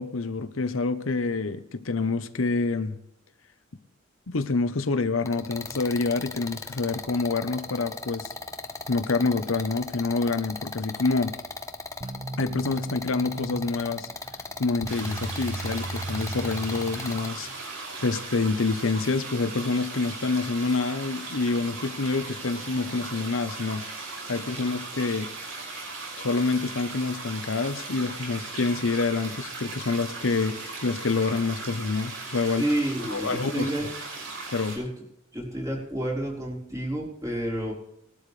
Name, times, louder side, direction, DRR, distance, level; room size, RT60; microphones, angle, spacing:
voice 1, 0.0-3.0 4.3-8.3 8.9-11.3 12.4-14.1 14.6-17.5 18.0-23.8 24.3-25.3 26.2-32.6 33.0-33.7 34.5-34.8, left 3 dB, 80° left, 0.9 m, -27 dB
sound 1, 5.2-17.3, left 3 dB, 15° left, 0.9 m, -38 dB
sound 2, 12.0-17.6, right 2 dB, 30° right, 0.6 m, -37 dB
City Drain, 14.8-34.8, right 3 dB, 80° right, 6.1 m, -38 dB
voice 2, 32.5-33.9 34.7-34.9 35.3-37.7, right 1 dB, 15° right, 4.2 m, -29 dB
20.5 x 12.0 x 3.3 m
head